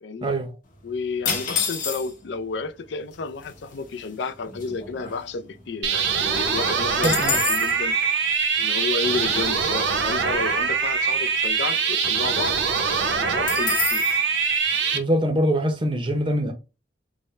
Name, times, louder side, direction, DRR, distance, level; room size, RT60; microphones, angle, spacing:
voice 1, 0.0-0.3 0.8-8.0 8.6-12.6 13.1-14.1, left 4 dB, 60° left, 0.4 m, -31 dB
sound 1, 1.3-2.3 3.1-3.2 3.4-3.8 4.2-5.7 6.0-6.1 6.4-7.8 13.5-14.2, left 6 dB, 45° left, 1.0 m, -28 dB
sound 2, 5.8-15.0, right 5 dB, 65° right, 0.6 m, -23 dB
voice 2, 7.0-7.4 14.9-16.5, equal, 25° right, 0.6 m, -23 dB
3.5 x 2.1 x 4.1 m
head